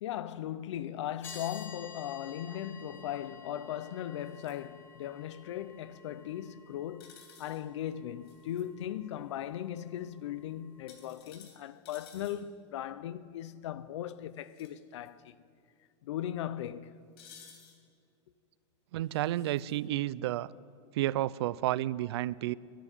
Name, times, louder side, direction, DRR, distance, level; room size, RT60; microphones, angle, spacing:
voice 1, 0.0-15.4 16.0-17.0, left 11 dB, 75° left, 0.6 m, -38 dB
sound 1, 1.2-1.7 4.3-4.6 7.0-7.6 8.2-8.6 10.9-12.4 14.4-14.7 15.0-15.1 17.2-17.8 19.1-19.8, left 7 dB, 60° left, 3.3 m, -54 dB
sound 2, 1.2-11.2, left 4 dB, 15° left, 0.7 m, -53 dB
voice 2, 18.9-20.5 20.9-22.5, right 14 dB, 60° right, 0.4 m, -31 dB
11.0 x 10.0 x 9.7 m
supercardioid pair, 175°, 15 cm